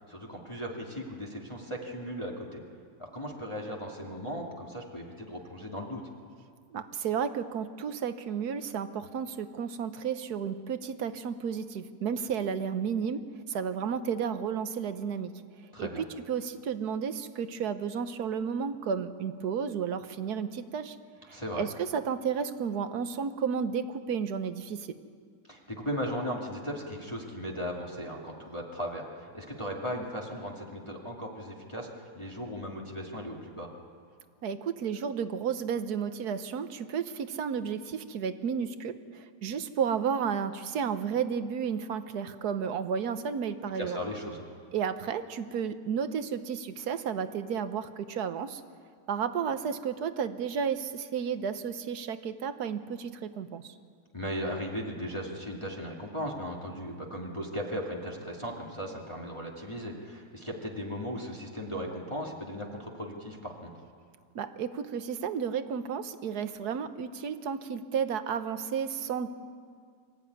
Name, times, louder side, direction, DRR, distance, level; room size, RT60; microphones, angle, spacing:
voice 1, 0.1-2.6 3.0-6.0 15.7-16.0 21.3-21.6 25.5-33.7 43.7-44.4 54.1-63.7, equal, 15° left, -2 dB, 2.1 m, -37 dB
voice 2, 6.7-13.2 13.5-15.3 15.8-21.0 21.3-25.0 34.4-44.0 44.7-48.6 49.1-53.7 64.3-69.3, right 7 dB, 70° right, 11 dB, 1.4 m, -32 dB
24.5 x 13.5 x 9.5 m, 2.1 s
omnidirectional pair, 1.8 m